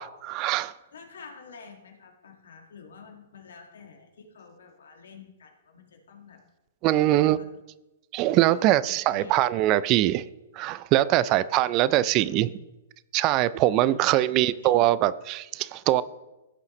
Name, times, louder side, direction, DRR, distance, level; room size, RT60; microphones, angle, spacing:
voice 1, 0.0-0.7 6.8-7.4 8.1-10.3 10.6-12.5 13.1-16.0, right 14 dB, 35° right, 17 dB, 0.3 m, -22 dB
voice 2, 0.9-6.4 6.9-7.5 8.4-9.4 11.0-12.6 13.8-14.9, left 5 dB, 80° left, 3 dB, 1.7 m, -49 dB
15.5 x 5.6 x 3.1 m, 1.0 s
hypercardioid pair, 125°, 0 cm